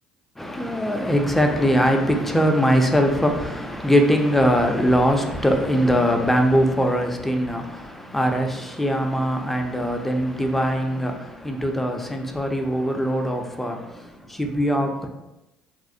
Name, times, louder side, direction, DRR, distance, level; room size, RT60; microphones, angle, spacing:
voice 1, 0.4-15.1, equal, 5° left, 3 dB, 0.4 m, -21 dB
2.4 x 2.0 x 2.6 m, 0.95 s
hypercardioid pair, 65°, 3 cm